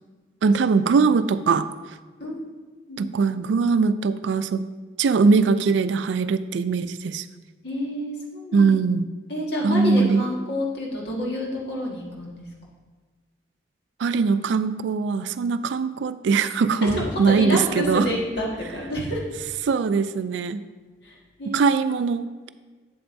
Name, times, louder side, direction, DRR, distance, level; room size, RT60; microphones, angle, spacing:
voice 1, 0.4-1.7 3.0-4.7 5.0-7.3 8.5-9.1 9.6-10.2 14.0-18.1 19.6-20.6 21.5-22.5, right 5 dB, 75° right, 13 dB, 0.3 m, -21 dB
voice 2, 2.8-3.1 7.6-8.7 9.3-12.4 16.8-19.3 21.0-21.7, equal, 65° left, -3 dB, 1.6 m, -29 dB
7.8 x 7.7 x 2.6 m, 1.4 s
head